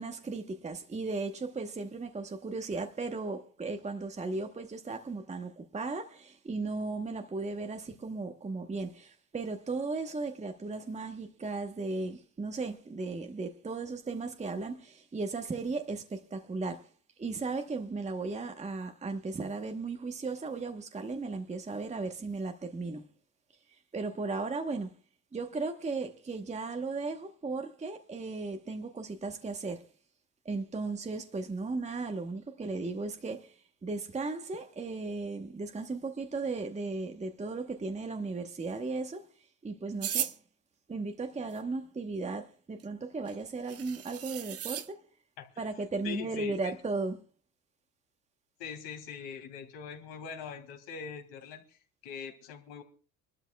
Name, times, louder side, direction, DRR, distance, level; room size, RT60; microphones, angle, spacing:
voice 1, 0.0-16.9 17.2-23.0 23.9-24.9 25.3-29.9 30.4-39.3 39.6-40.3 40.9-45.0 45.6-47.2, right 3 dB, 15° right, 1.1 m, -36 dB
sound 1, 40.0-40.3 42.8-42.9 43.3-43.4 43.7-44.9, right 10 dB, 35° right, 0.7 m, -35 dB
voice 2, 46.0-46.7 48.6-51.8 52.0-52.8, left 7 dB, 70° left, 3.1 m, -42 dB
25.0 x 12.5 x 2.3 m
supercardioid pair, 85°, 45 cm